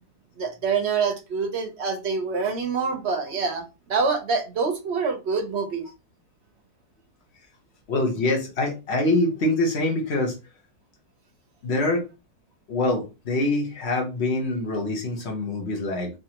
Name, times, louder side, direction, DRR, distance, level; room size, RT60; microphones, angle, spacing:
voice 1, 0.4-3.6 3.9-5.8, right 5 dB, 50° right, 1.0 m, -26 dB
voice 2, 7.9-10.3 11.6-12.1 12.7-16.2, left 2 dB, 45° left, 1.3 m, -25 dB
3.9 x 2.9 x 2.9 m
omnidirectional pair, 1.8 m